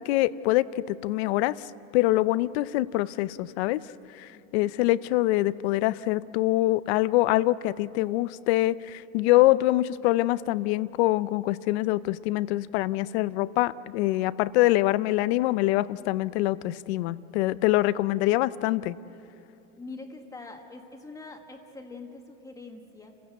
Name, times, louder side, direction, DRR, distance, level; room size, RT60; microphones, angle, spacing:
voice 1, 0.0-1.7 1.9-3.8 4.1-19.0, left 17 dB, 45° left, 18 dB, 0.6 m, -24 dB
voice 2, 4.3-4.7 19.8-23.1, left 3 dB, 10° left, 3 dB, 1.5 m, -44 dB
29.5 x 16.0 x 8.0 m, 2.8 s
supercardioid pair, 155°, 45 cm